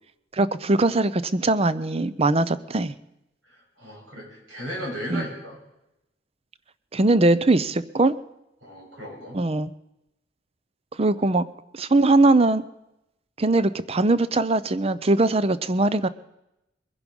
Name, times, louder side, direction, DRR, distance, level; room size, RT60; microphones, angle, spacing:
voice 1, 0.3-2.9 5.1-5.3 6.9-8.2 9.3-9.7 11.0-11.5 11.7-12.6 13.4-16.1, right 2 dB, 30° right, 15 dB, 0.6 m, -21 dB
voice 2, 3.5-5.6 8.6-9.4, equal, 75° right, -2 dB, 7.5 m, -36 dB
22.0 x 11.0 x 5.3 m, 0.88 s
head